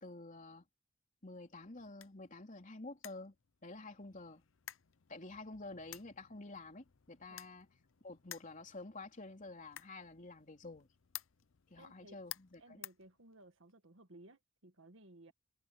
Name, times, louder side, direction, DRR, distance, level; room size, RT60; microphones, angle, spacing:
voice 1, 0.0-0.7 1.2-3.3 3.6-4.4 5.1-7.7 8.0-10.9 11.7-12.8, left 2 dB, 40° left, 3.3 m, -49 dB
sound 1, 1.4-13.7, left 14 dB, 70° left, 0.7 m, -55 dB
voice 2, 11.8-12.2 12.6-15.3, right 1 dB, 70° right, 1.8 m, -59 dB
head